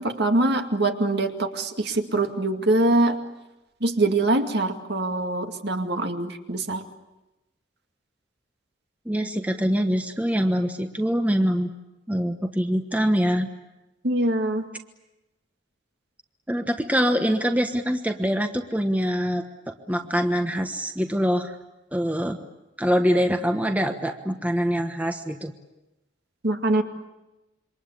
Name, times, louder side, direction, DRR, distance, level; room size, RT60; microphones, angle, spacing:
voice 1, 0.0-3.2 3.8-6.8 14.0-14.7 26.4-26.8, right 2 dB, 55° right, 5 dB, 2.3 m, -23 dB
voice 2, 9.0-11.7 12.1-13.5 16.5-21.6 21.9-22.5 22.8-25.5, equal, 10° right, 6 dB, 1.2 m, -24 dB
27.5 x 24.5 x 8.5 m, 0.98 s
head